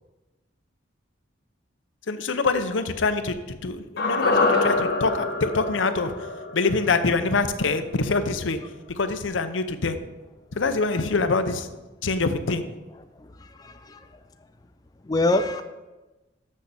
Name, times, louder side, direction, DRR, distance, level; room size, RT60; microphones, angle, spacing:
voice 1, 2.1-6.1 6.5-8.6 9.0-10.0 10.5-11.7 12.0-12.6, left 3 dB, 80° left, 9 dB, 0.7 m, -25 dB
sound 1, 4.0-8.3 8.5-8.6, left 3 dB, 55° left, 1.3 m, -26 dB
voice 2, 13.2-14.2 15.0-15.6, left 2 dB, 20° left, 7 dB, 0.4 m, -26 dB
6.6 x 6.3 x 7.0 m, 1.1 s
head